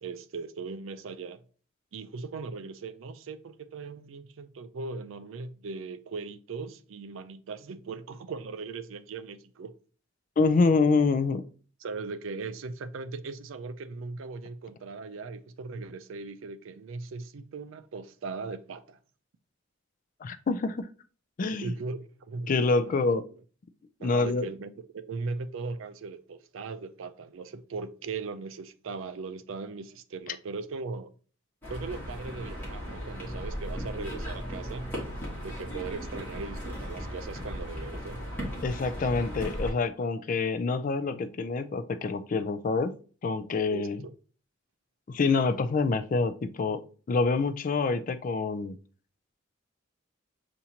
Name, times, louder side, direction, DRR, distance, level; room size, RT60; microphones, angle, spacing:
voice 1, 0.0-1.4 1.9-9.7 11.8-19.0 21.6-23.2 24.0-31.1 31.7-34.9 35.4-38.2 43.7-44.1, right 4 dB, 75° right, 0.4 m, -39 dB
voice 2, 10.4-11.4 20.2-20.9 21.4-21.7 22.5-23.2 24.0-24.5 38.6-42.9 43.2-44.0 45.1-46.8 47.1-48.8, left 4 dB, 40° left, 0.4 m, -26 dB
sound 1, 31.6-39.7, equal, 10° left, 1.5 m, -37 dB
6.9 x 2.6 x 2.8 m
head